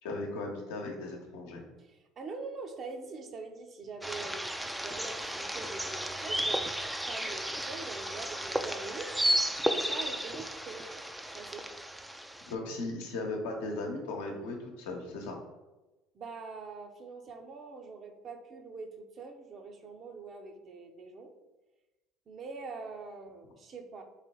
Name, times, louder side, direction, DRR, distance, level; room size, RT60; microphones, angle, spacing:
voice 1, 0.0-1.6 12.5-15.4, left 2 dB, 80° left, 1 dB, 0.9 m, -37 dB
voice 2, 1.8-4.5 4.8-6.7 7.1-9.1 9.7-11.0 11.3-11.7 16.1-21.3 22.3-24.0, right 4 dB, 45° right, 4 dB, 0.6 m, -44 dB
sound 1, 4.0-12.5, right 1 dB, 5° right, 0.4 m, -33 dB
3.3 x 3.0 x 4.5 m, 1.1 s
hypercardioid pair, 70°, 0 cm